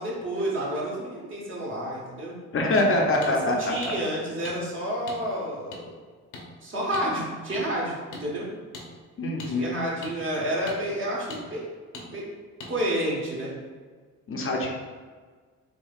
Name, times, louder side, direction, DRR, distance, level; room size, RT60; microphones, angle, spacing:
voice 1, 0.0-2.4 3.2-5.9 6.6-8.5 9.5-11.6 11.9-12.2 12.7-13.5, right 1 dB, 40° right, -5 dB, 1.3 m, -30 dB
voice 2, 2.5-3.7 9.2-9.7 14.3-14.7, left 1 dB, 45° left, 0 dB, 0.6 m, -24 dB
sound 1, 3.2-3.3 3.8-3.9 4.4-4.6 5.1-5.2 5.7-5.8 6.3-6.5 6.9-7.1 7.5-7.6 8.1-8.2 8.7-8.9 9.4-9.5 10.0-10.1 10.7-10.8 11.3-11.4 11.9-12.1 12.6-12.7, left 3 dB, 75° left, 0.8 m, -40 dB
4.5 x 2.7 x 2.4 m, 1.5 s
cardioid pair, 90°, 30 cm